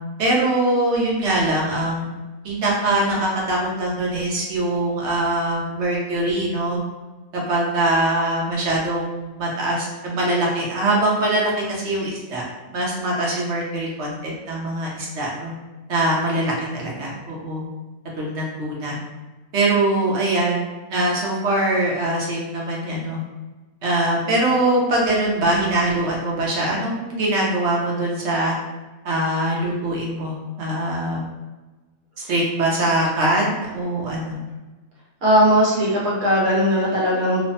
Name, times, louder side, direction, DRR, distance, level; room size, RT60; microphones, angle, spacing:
voice 1, 0.0-2.2 2.4-6.8 7.3-12.4 12.7-15.5 15.9-17.6 18.2-19.0 19.5-20.6 20.9-23.2 23.8-28.5 29.0-31.3 32.3-34.4, right 1 dB, 60° right, -3 dB, 0.9 m, -22 dB
voice 2, 35.2-37.4, equal, 85° right, -6 dB, 1.4 m, -18 dB
3.2 x 2.0 x 2.7 m, 1.2 s
omnidirectional pair, 1.5 m